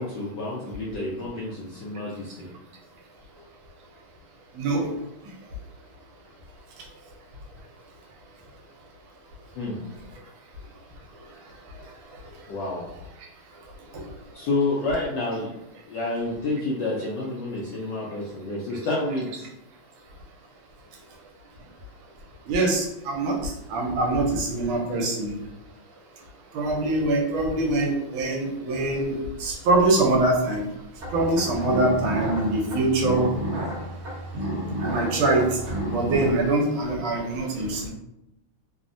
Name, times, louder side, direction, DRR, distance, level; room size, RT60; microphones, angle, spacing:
voice 1, 0.0-2.5 9.6-9.8 12.5-12.9 14.3-15.5 15.9-19.5, left 2 dB, 80° left, -5 dB, 1.0 m, -29 dB
voice 2, 4.6-4.9 13.9-14.0 22.5-25.3 26.5-30.6 31.1-33.3 34.8-35.5 35.9-37.9, right 2 dB, 75° right, -1 dB, 1.3 m, -24 dB
sound 1, 31.0-36.2, right 1 dB, 50° right, 0.8 m, -31 dB
3.4 x 2.0 x 2.5 m, 0.86 s
omnidirectional pair, 2.4 m